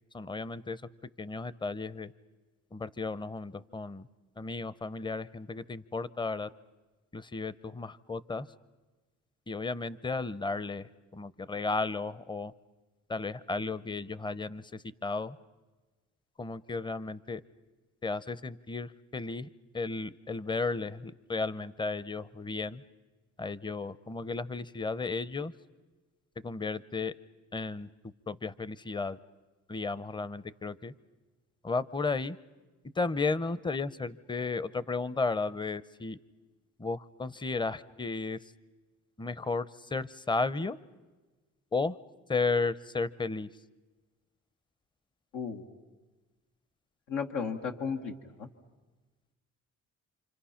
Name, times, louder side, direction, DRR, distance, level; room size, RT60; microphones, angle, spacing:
voice 1, 0.1-0.8 1.2-2.1 2.7-4.1 4.4-6.5 7.1-8.5 9.5-12.5 13.1-15.4 16.4-17.4 18.0-19.5 19.7-22.8 23.4-25.5 26.4-27.1 27.5-27.9 28.3-29.2 29.7-30.9 31.6-32.4 33.0-36.2 36.8-38.4 39.2-40.8 41.7-42.0 42.3-43.5, left 3 dB, 15° left, 18 dB, 0.7 m, -34 dB
voice 2, 45.3-45.6 47.1-48.5, left 6 dB, 90° left, 2 dB, 1.6 m, -34 dB
28.5 x 25.5 x 5.8 m, 1.2 s
cardioid pair, 90°, 30 cm